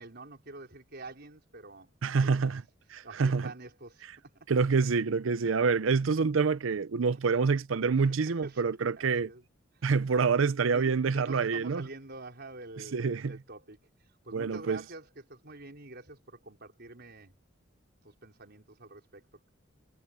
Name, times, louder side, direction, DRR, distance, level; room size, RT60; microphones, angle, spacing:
voice 1, 0.0-2.5 3.0-4.3 5.4-5.7 8.3-9.4 9.7-9.9 10.7-17.3 18.0-19.4, right 2 dB, 55° right, 4.9 m, -47 dB
voice 2, 2.0-2.6 2.9-3.5 4.5-9.3 9.8-11.8 12.9-13.4 14.3-14.8, right 5 dB, 80° right, 0.6 m, -27 dB
head